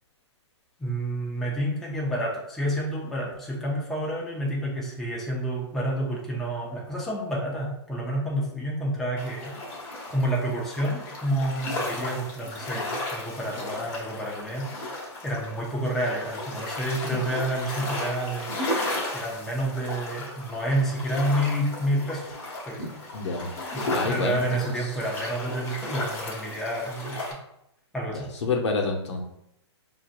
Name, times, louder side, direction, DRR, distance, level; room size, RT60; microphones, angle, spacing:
voice 1, 0.8-9.5 10.1-14.7 15.2-18.5 19.1-22.3 22.7-22.8 23.7-27.3 27.9-28.3, right 1 dB, ahead, -4 dB, 0.6 m, -29 dB
sound 1, 9.2-27.3, left 1 dB, 35° left, 1.1 m, -34 dB
voice 2, 23.1-23.5 23.8-24.4 28.1-29.2, left 3 dB, 80° left, 2 dB, 0.9 m, -28 dB
4.8 x 2.7 x 2.5 m, 0.81 s
hypercardioid pair, 155°, 15 cm